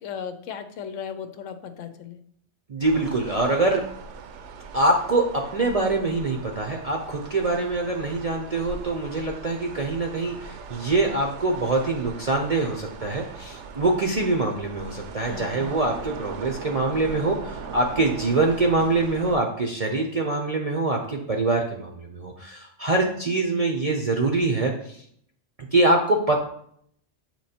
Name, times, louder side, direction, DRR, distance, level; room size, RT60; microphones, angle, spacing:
voice 1, 0.0-2.2 15.3-15.7, left 7 dB, 90° left, 8 dB, 1.0 m, -36 dB
voice 2, 2.7-3.8 4.7-5.2 5.5-25.0 25.6-26.4, right 2 dB, 40° right, 1 dB, 0.6 m, -24 dB
sound 1, 2.8-19.4, right 5 dB, 75° right, 0.9 m, -40 dB
7.6 x 3.0 x 4.3 m, 0.66 s
omnidirectional pair, 1.3 m